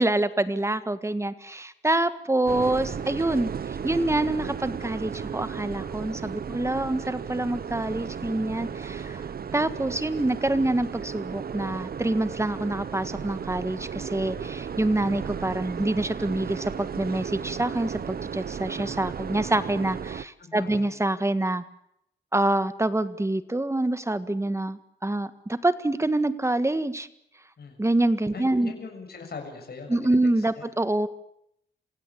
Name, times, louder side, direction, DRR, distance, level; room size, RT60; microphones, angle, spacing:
voice 1, 0.0-9.2 9.5-21.6 22.3-27.1 27.8-28.7 29.9-31.1, right 2 dB, 15° right, 12 dB, 1.7 m, -26 dB
sound 1, 2.5-20.2, right 7 dB, 50° right, 0.9 m, -35 dB
voice 2, 20.4-20.9 27.6-27.8 28.3-30.7, left 4 dB, 55° left, 3 dB, 7.1 m, -41 dB
28.0 x 16.5 x 8.6 m, 0.76 s
cardioid pair, 90°, 20 cm